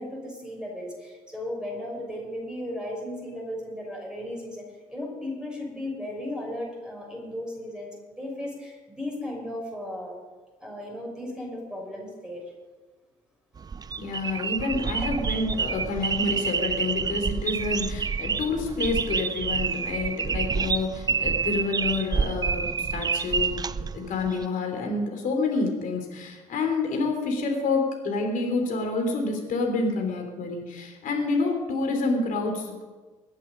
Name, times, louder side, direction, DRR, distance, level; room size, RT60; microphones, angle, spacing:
voice 1, 0.0-10.1 10.6-12.4, left 1 dB, 5° right, -2 dB, 6.1 m, -35 dB
sound 1, 13.6-24.5, right 5 dB, 25° right, 0.4 m, -28 dB
voice 2, 14.0-23.6 23.9-32.8, left 3 dB, 50° left, 2 dB, 3.4 m, -28 dB
23.0 x 8.2 x 5.2 m, 1.3 s
figure-of-eight pair, 50°, 17 cm